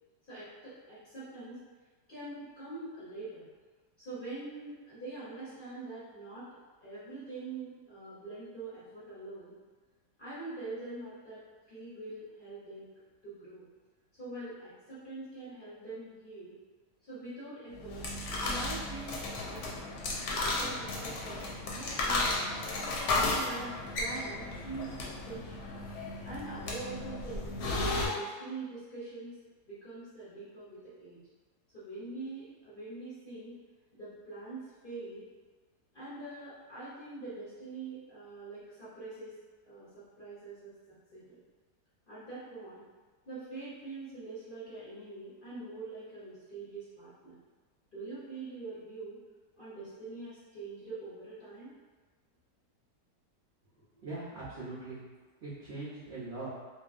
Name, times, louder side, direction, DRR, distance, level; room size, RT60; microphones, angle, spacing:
voice 1, 0.2-1.6 2.1-3.4 4.0-6.5 6.8-9.6 10.2-12.9 13.2-13.6 14.1-16.6 17.0-18.0 18.4-19.8 20.3-22.7 23.3-25.7 26.2-27.6 28.0-29.4 29.6-31.2 31.7-33.6 33.9-35.3 35.9-39.3 39.6-40.8 41.1-41.4 42.1-42.9 43.3-47.4 47.9-49.2 49.6-51.7, right 3 dB, 45° left, -12 dB, 0.7 m, -44 dB
sound 1, 17.7-28.1, left 2 dB, 70° left, 1.0 m, -34 dB
voice 2, 54.0-55.0 55.4-56.5, right 2 dB, 65° right, -9 dB, 0.6 m, -41 dB
2.9 x 2.6 x 2.4 m, 1.4 s
omnidirectional pair, 1.8 m